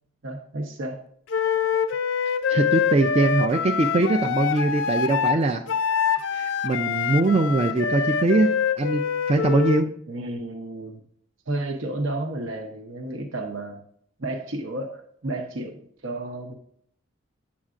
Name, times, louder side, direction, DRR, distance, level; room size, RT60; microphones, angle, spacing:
voice 1, 0.2-1.0 10.1-11.0 11.5-13.8 14.2-16.5, right 2 dB, 75° right, 4 dB, 0.8 m, -32 dB
Wind instrument woodwind instrument, 1.3-9.8, left 7 dB, 65° left, 0.4 m, -25 dB
voice 2, 2.5-5.6 6.3-8.5 8.8-9.0 9.3-9.9, right 2 dB, 30° right, 6 dB, 0.3 m, -22 dB
8.6 x 7.1 x 2.5 m, 0.66 s
head